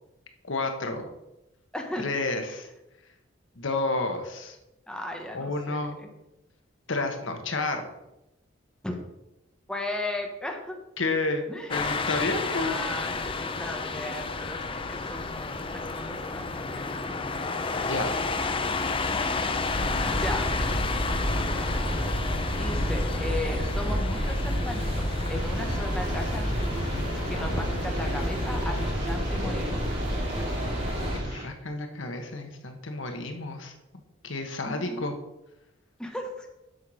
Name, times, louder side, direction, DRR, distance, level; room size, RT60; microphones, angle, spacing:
voice 1, 0.5-1.1 2.0-2.7 3.6-4.6 5.3-6.0 6.9-7.9 11.0-11.4 11.7-12.8 17.8-18.2 31.1-33.7 34.2-35.1, left 2 dB, 75° left, 5 dB, 1.3 m, -30 dB
voice 2, 1.7-2.1 4.9-6.1 8.8-8.9 9.7-10.8 11.5-11.7 12.4-17.0 20.2-20.6 22.5-26.9 27.3-29.8 34.6-35.1 36.0-36.5, left 1 dB, 5° left, 1 dB, 1.2 m, -36 dB
sound 1, 11.7-28.9, left 3 dB, 25° left, 0.6 m, -32 dB
sound 2, 19.7-31.2, equal, 30° right, 2.6 m, -29 dB
sound 3, 25.3-31.4, right 1 dB, 55° right, 3.3 m, -41 dB
7.9 x 5.7 x 6.2 m, 0.92 s
head